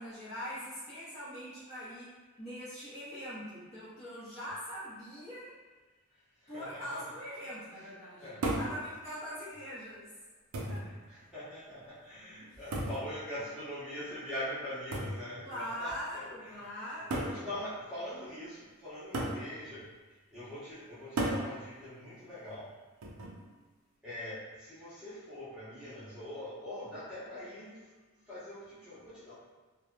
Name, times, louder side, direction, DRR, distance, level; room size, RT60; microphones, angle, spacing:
voice 1, 0.0-5.5 6.5-10.1 10.7-10.8 15.4-17.6, equal, 30° left, -12 dB, 0.6 m, -42 dB
voice 2, 6.4-7.0 7.7-7.9 8.2-8.5 10.8-16.7 17.1-19.9 20.3-22.7 24.0-27.9 28.3-29.3, left 1 dB, 5° right, -13 dB, 0.9 m, -43 dB
sound 1, 8.4-8.8 9.8-9.9 10.5-10.9 12.7-13.1 14.9-15.2 16.3-16.4 17.1-17.4 19.1-19.4 21.2-21.5 23.0-23.4, right 1 dB, 90° right, 0.5 m, -33 dB
2.7 x 2.2 x 2.3 m, 1.3 s
head